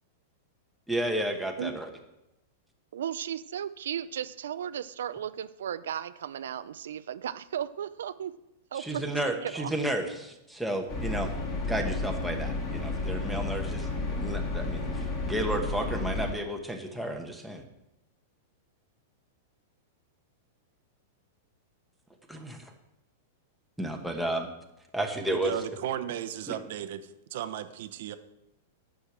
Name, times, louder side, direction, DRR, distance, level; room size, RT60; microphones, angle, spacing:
voice 1, 0.9-1.9 8.7-11.3 11.6-17.6 22.3-22.7 23.8-24.5 24.9-25.5 26.5-26.6, right 1 dB, ahead, 1.1 m, -32 dB
voice 2, 2.9-8.3 8.7-9.7, right 9 dB, 90° right, 0.5 m, -35 dB
sound 1, 10.9-16.3, left 3 dB, 30° left, 3.0 m, -32 dB
voice 3, 25.3-28.2, right 11 dB, 60° right, 0.9 m, -35 dB
10.0 x 6.3 x 7.3 m
supercardioid pair, 160°, 0 cm